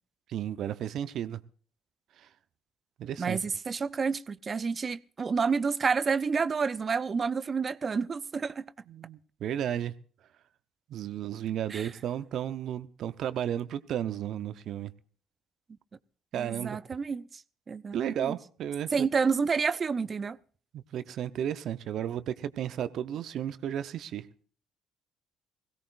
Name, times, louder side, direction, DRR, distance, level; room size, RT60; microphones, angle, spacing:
voice 1, 0.3-1.4 2.2-2.3 3.0-3.4 8.9-9.9 10.9-14.9 16.3-16.8 17.9-19.1 20.7-24.3, right 10 dB, 65° right, 0.9 m, -33 dB
voice 2, 3.2-8.7 11.7-11.9 16.3-17.4 17.7-18.4 18.9-20.4, right 5 dB, 40° right, 0.7 m, -29 dB
21.5 x 16.5 x 2.6 m
hypercardioid pair, 55°, 0 cm